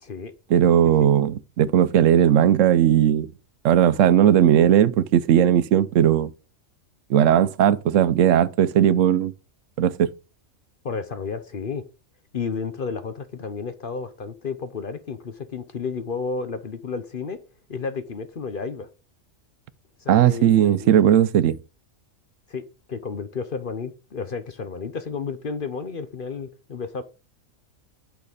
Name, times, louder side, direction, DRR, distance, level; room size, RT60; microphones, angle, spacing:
voice 1, 0.0-0.3 10.8-11.8 12.3-17.4 17.7-18.9 20.0-21.0 22.5-22.6 22.9-27.0, left 5 dB, 45° left, 0.9 m, -32 dB
voice 2, 0.5-3.3 3.6-6.3 7.1-9.3 9.8-10.1 20.1-21.6, right 10 dB, 75° right, 1.0 m, -17 dB
8.7 x 5.9 x 5.2 m
omnidirectional pair, 1.4 m